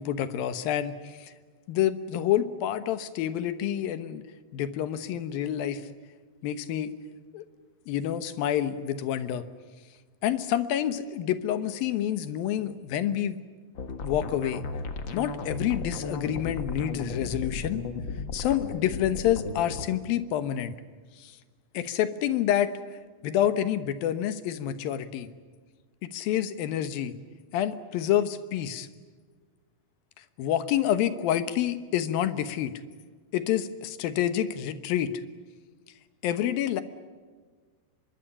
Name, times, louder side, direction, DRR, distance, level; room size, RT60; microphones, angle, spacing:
voice 1, 0.0-1.3 1.7-4.2 4.5-5.9 6.4-6.9 7.3-7.4 7.9-9.4 10.2-13.4 14.0-14.6 15.1-17.8 18.3-20.7 21.2-21.4 21.7-25.3 26.0-27.1 27.5-28.9 30.4-32.7 33.3-35.1 36.2-36.8, left 11 dB, 85° left, 12 dB, 3.0 m, -28 dB
sound 1, 13.7-19.9, left 4 dB, 45° left, 1.7 m, -35 dB
25.0 x 22.0 x 9.9 m, 1.5 s
omnidirectional pair, 4.0 m